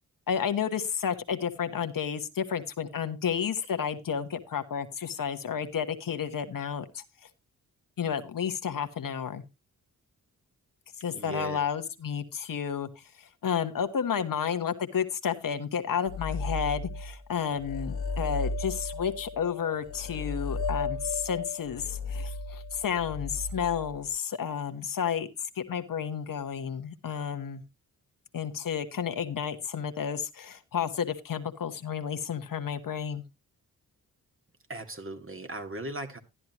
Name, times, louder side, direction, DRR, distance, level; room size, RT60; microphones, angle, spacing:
voice 1, 0.3-7.0 8.0-9.4 11.0-25.3 25.5-27.6 28.3-33.2, left 7 dB, 60° left, 9 dB, 1.3 m, -31 dB
voice 2, 11.1-11.6 34.7-36.2, right 2 dB, 35° right, 6 dB, 2.2 m, -38 dB
sound 1, 16.1-17.2 17.5-24.1, left 3 dB, 75° left, 1.2 m, -35 dB
12.5 x 10.5 x 3.0 m, 0.26 s
supercardioid pair, 45°, 38 cm